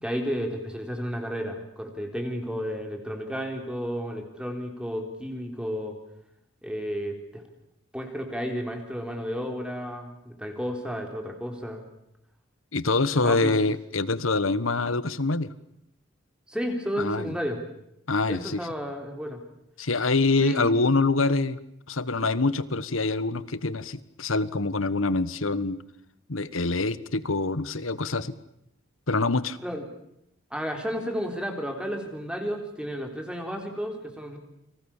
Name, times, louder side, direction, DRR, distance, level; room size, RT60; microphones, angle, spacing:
voice 1, 0.0-6.0 6.6-7.4 7.9-11.8 13.2-13.6 16.5-17.6 18.3-19.4 20.4-20.7 29.6-29.9 30.5-34.4, equal, 5° right, 3 dB, 4.0 m, -32 dB
voice 2, 12.7-15.5 17.0-17.3 18.1-18.6 19.8-21.6 21.9-25.8 26.3-28.3 29.1-29.6, left 3 dB, 90° left, 16 dB, 1.4 m, -25 dB
30.0 x 26.0 x 7.3 m, 0.78 s
head